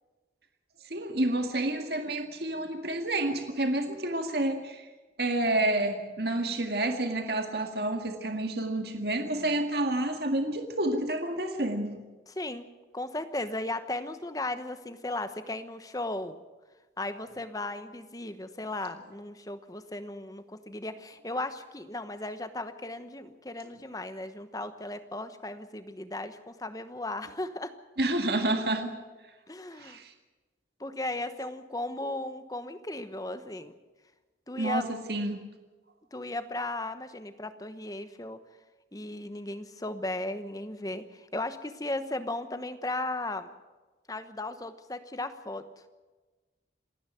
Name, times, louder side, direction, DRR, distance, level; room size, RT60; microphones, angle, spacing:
voice 1, 0.9-4.9 5.2-12.0 28.0-28.9 29.8-30.1 34.6-35.4, right 1 dB, 60° right, 5 dB, 2.0 m, -29 dB
voice 2, 12.3-12.7 12.9-16.4 17.0-27.7 29.5-30.0 30.8-33.7 34.5-34.9 36.1-38.4 38.9-43.5 44.1-45.7, left 2 dB, 20° left, 10 dB, 1.1 m, -36 dB
27.5 x 10.5 x 9.2 m, 1.2 s
head